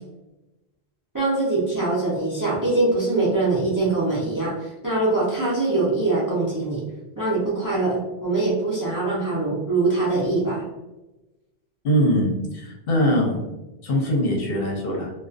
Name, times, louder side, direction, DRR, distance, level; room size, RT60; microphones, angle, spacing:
voice 1, 1.1-6.8 7.2-10.6, right 2 dB, 25° right, -7 dB, 0.5 m, -23 dB
voice 2, 11.8-13.4 13.8-15.1, equal, 65° left, -1 dB, 0.8 m, -22 dB
2.3 x 2.2 x 2.4 m, 1.0 s
omnidirectional pair, 1.1 m